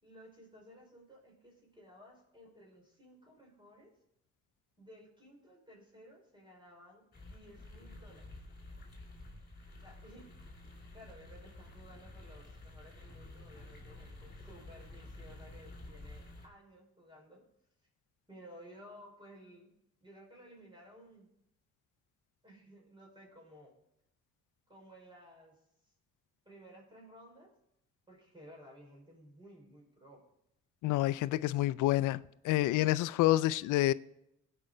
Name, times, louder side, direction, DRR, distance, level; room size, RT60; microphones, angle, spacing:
voice 1, 0.0-3.9 4.8-8.3 9.8-10.5 10.9-17.4 18.3-19.7 20.0-21.3 22.4-23.7 24.7-25.6 25.8-25.9 26.4-27.5 28.1-30.2, equal, 15° right, 5.0 m, -56 dB
sound 1, 7.1-16.5, left 2 dB, 30° left, 3.5 m, -51 dB
voice 2, 30.8-32.2 32.4-33.9, left 16 dB, 85° left, 0.5 m, -28 dB
16.0 x 5.6 x 5.0 m
cardioid pair, 90°, 30 cm